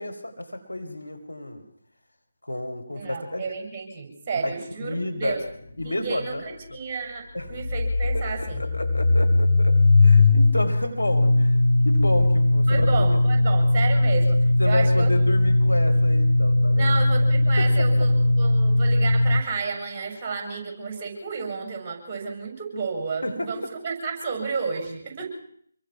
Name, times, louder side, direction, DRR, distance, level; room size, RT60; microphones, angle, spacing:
voice 1, 0.0-1.6 2.4-3.5 4.4-5.4 5.8-6.8 7.3-7.6 8.1-13.2 14.6-17.0 17.6-18.1 23.2-23.5, left 1 dB, 80° left, 6 dB, 4.4 m, -31 dB
voice 2, 2.9-5.4 5.8-8.6 12.7-15.1 16.8-25.3, right 5 dB, 20° right, 4 dB, 7.0 m, -32 dB
sound 1, 5.5-5.6 5.8-5.9 7.4-19.4, left 2 dB, 60° left, 2.5 m, -19 dB
27.0 x 22.5 x 6.1 m, 0.67 s
figure-of-eight pair, 150°, 0 cm